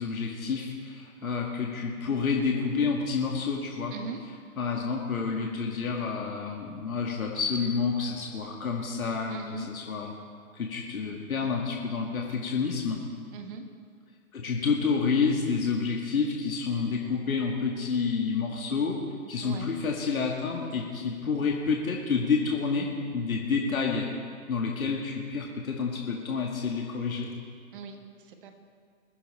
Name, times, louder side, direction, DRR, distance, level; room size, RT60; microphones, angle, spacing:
voice 1, 0.0-3.9 4.6-10.1 10.5-13.0 14.3-19.0 19.3-24.1 24.5-27.3, left 5 dB, 70° left, -1 dB, 2.3 m, -29 dB
voice 2, 3.9-4.2 9.3-9.7 13.3-13.6 19.4-19.7 27.7-28.5, right 5 dB, 35° right, 6 dB, 1.5 m, -39 dB
21.5 x 10.5 x 4.5 m, 2.1 s
figure-of-eight pair, 135°, 44 cm